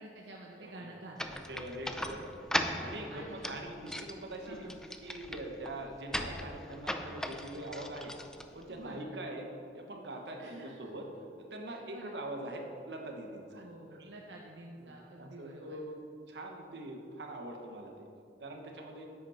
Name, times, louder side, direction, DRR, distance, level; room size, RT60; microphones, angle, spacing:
voice 1, 0.0-1.4 3.1-3.4 4.4-4.8 8.7-9.2 10.4-10.9 11.7-12.2 13.5-15.8, right 1 dB, 90° right, -1 dB, 0.9 m, -49 dB
voice 2, 0.6-0.9 1.5-2.3 2.8-4.7 5.0-8.1 8.5-9.5 9.7-11.0 11.4-14.1 14.8-16.0 16.3-18.1 18.4-19.1, right 1 dB, 70° right, 2 dB, 1.3 m, -43 dB
sound 1, 1.2-9.0, left 1 dB, 5° left, 0.4 m, -39 dB
10.5 x 8.5 x 4.4 m, 2.4 s
head